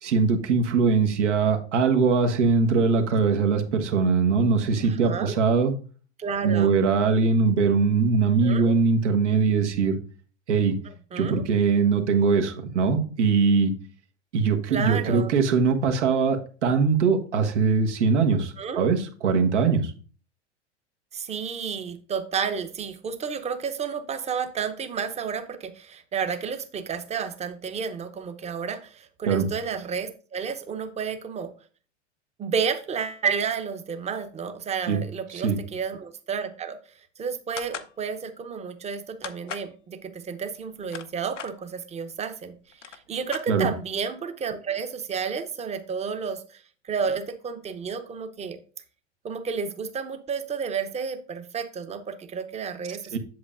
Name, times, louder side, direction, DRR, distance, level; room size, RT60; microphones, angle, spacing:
voice 1, 0.0-5.7 6.4-10.0 10.5-10.8 11.1-13.7 14.3-19.9 29.3-29.5 34.9-35.0 35.3-35.6 43.5-43.7 53.1-53.2, right 5 dB, 75° right, 5 dB, 1.3 m, -21 dB
voice 2, 4.8-5.3 6.2-6.7 8.4-8.7 11.1-11.4 14.7-15.3 18.3-18.9 21.1-31.5 32.4-36.8 37.2-48.6 49.2-53.2, right 6 dB, 20° right, 9 dB, 0.8 m, -31 dB
sound 1, 37.6-37.9 39.2-39.7 40.6-41.5 42.4-42.5 42.7-43.9, left 8 dB, 90° left, 0.7 m, -38 dB
8.0 x 7.3 x 2.5 m, 0.40 s
hypercardioid pair, 100°, 35 cm